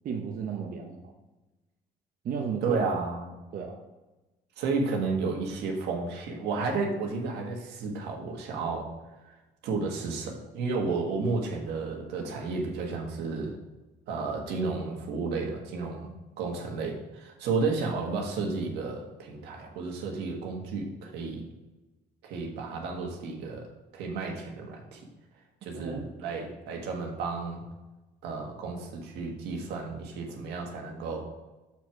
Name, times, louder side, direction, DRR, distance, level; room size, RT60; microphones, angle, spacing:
voice 1, 0.0-1.1 2.2-2.8 3.5-3.8 25.7-26.1, right 6 dB, 55° right, 1 dB, 0.9 m, -34 dB
voice 2, 2.6-3.3 4.6-8.9 9.2-9.4 9.6-13.6 14.1-16.1 16.4-21.5 22.2-23.7 23.9-25.0 25.6-27.6 28.2-31.2, right 4 dB, 85° right, 1 dB, 1.6 m, -32 dB
7.1 x 4.6 x 4.8 m, 1.1 s
cardioid pair, 110°, 17 cm